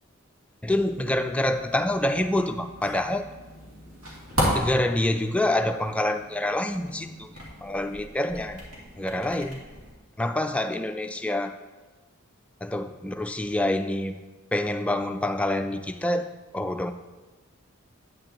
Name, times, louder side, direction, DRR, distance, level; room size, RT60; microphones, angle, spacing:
voice 1, 0.6-3.3 4.5-7.3 7.6-8.6 9.0-9.6 10.2-11.5 12.6-14.1 14.5-16.9, left 1 dB, 5° left, 6 dB, 0.3 m, -26 dB
sound 1, 0.7-9.9, equal, 75° right, 2.5 m, -35 dB
9.1 x 8.8 x 2.9 m, 1.2 s
head